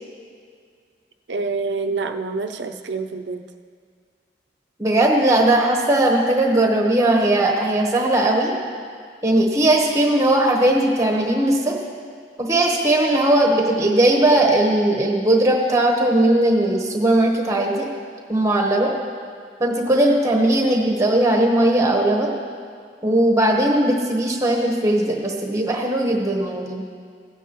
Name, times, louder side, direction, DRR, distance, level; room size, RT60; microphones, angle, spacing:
voice 1, 1.3-3.4, right 4 dB, 75° right, 6 dB, 0.6 m, -26 dB
voice 2, 4.8-8.5 9.2-11.8 12.4-17.9 18.3-18.9 19.6-22.4 23.0-26.8, right 1 dB, 15° right, 0 dB, 1.1 m, -18 dB
16.5 x 9.2 x 3.0 m, 2.1 s
head